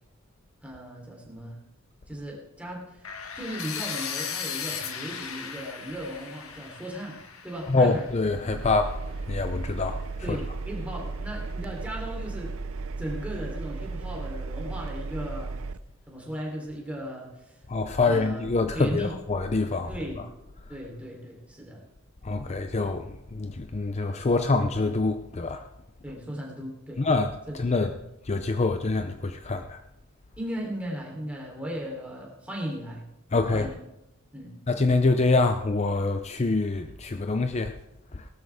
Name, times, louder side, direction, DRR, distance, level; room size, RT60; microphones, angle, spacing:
voice 1, 0.6-1.6 2.1-3.1 3.4-7.2 7.4-8.1 10.2-12.5 13.0-15.5 16.1-17.6 18.0-18.5 18.7-19.1 19.9-20.2 20.7-21.8 26.0-27.0 27.5-27.6 27.8-28.0 30.4-33.0 33.5-33.8 34.3-34.6, equal, 5° right, 3.5 m, -36 dB
sound 1, 3.0-9.0, left 7 dB, 85° left, 1.6 m, -37 dB
voice 2, 7.7-9.0 9.3-10.0 10.3-10.4 17.7-19.9 22.2-25.6 27.0-28.0 28.3-29.8 33.3-33.7 34.7-37.8 38.1-38.2, left 3 dB, 30° left, 0.5 m, -25 dB
Engine, 8.5-15.8, right 3 dB, 70° right, 0.5 m, -35 dB
18.0 x 13.0 x 3.6 m
head